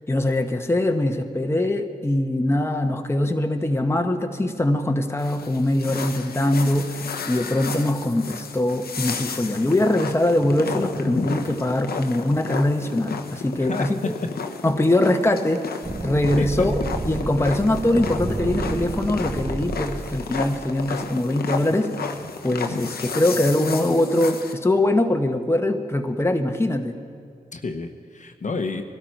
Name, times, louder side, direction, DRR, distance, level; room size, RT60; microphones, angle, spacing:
voice 1, 0.1-14.1 14.6-15.8 16.0-16.7 17.0-22.0 22.4-26.9, left 1 dB, 15° left, 4 dB, 1.2 m, -22 dB
sound 1, 5.2-24.5, left 5 dB, 65° left, 1.1 m, -33 dB
voice 2, 13.6-13.9 16.4-16.7 27.5-28.8, left 3 dB, 50° left, 6 dB, 1.2 m, -30 dB
sound 2, 15.8-21.2, right 3 dB, 20° right, 0.7 m, -31 dB
20.5 x 12.5 x 4.7 m, 2.3 s
cardioid pair, 50°, 17 cm